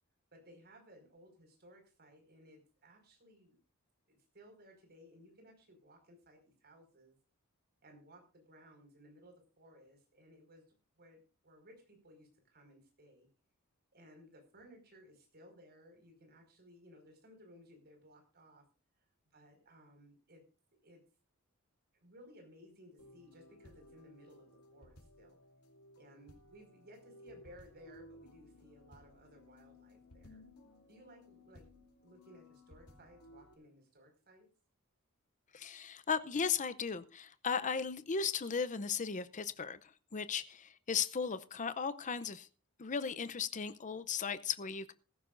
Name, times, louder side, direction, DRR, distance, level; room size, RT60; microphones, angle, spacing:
voice 1, 0.3-3.6 4.1-7.2 7.8-13.3 13.9-18.6 19.3-20.4 20.8-21.0 21.9-25.4 26.0-30.4 30.9-34.5, equal, 50° right, 4 dB, 5.3 m, -60 dB
sound 1, 23.0-33.5, left 1 dB, 90° left, 2.9 m, -59 dB
voice 2, 35.5-42.5 42.8-44.9, left 6 dB, 35° left, 13 dB, 0.6 m, -36 dB
17.0 x 15.0 x 2.6 m, 0.34 s
head